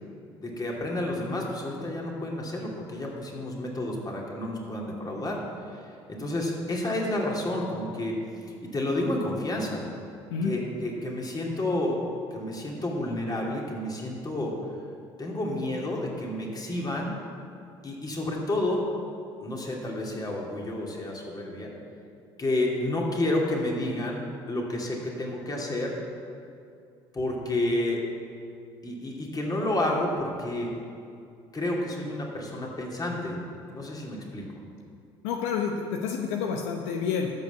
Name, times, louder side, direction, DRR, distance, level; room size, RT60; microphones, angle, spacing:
voice 1, 0.4-5.4 5.7-5.8 6.1-8.2 8.7-9.9 10.4-12.0 12.3-14.6 15.2-17.1 17.8-18.9 19.4-21.7 22.4-26.0 27.1-28.0 28.8-30.7 31.5-33.4 33.7-34.5, left 1 dB, 30° left, -2 dB, 2.8 m, -30 dB
voice 2, 35.2-37.3, left 6 dB, 80° left, 2 dB, 0.8 m, -29 dB
13.0 x 5.5 x 6.8 m, 2.5 s
hypercardioid pair, 65°, 13 cm